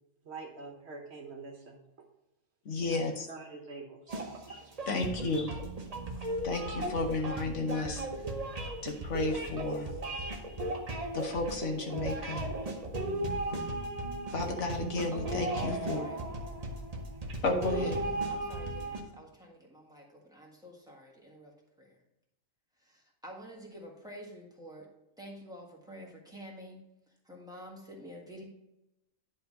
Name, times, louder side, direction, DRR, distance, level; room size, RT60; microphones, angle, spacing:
voice 1, 0.2-2.1 2.9-3.0 3.3-5.0, right 4 dB, 55° right, 2 dB, 1.3 m, -46 dB
voice 2, 2.6-3.3 4.5-4.6 4.9-5.5 6.4-8.1 8.8-9.9 11.1-12.5 14.3-16.0 17.4-18.0, left 3 dB, 65° left, 3 dB, 1.3 m, -32 dB
sound 1, 4.1-19.0, right 1 dB, 30° right, 0.9 m, -36 dB
voice 3, 15.1-16.2 17.6-22.0 22.8-24.9 25.2-26.8 27.2-28.4, equal, 5° right, -2 dB, 1.5 m, -48 dB
10.5 x 3.5 x 5.2 m, 0.91 s
omnidirectional pair, 1.4 m